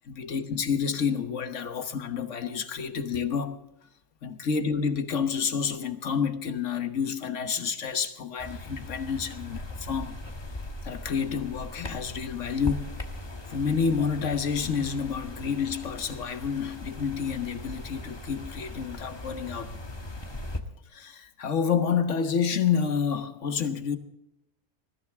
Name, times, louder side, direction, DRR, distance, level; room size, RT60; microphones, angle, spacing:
voice 1, 0.1-3.6 4.2-10.1 10.8-12.9 13.5-19.7 20.9-24.0, left 6 dB, 50° left, 1.4 m, -29 dB
sound 1, 8.4-20.6, left 1 dB, 20° left, 1.3 m, -39 dB
20.0 x 14.5 x 3.5 m
omnidirectional pair, 1.7 m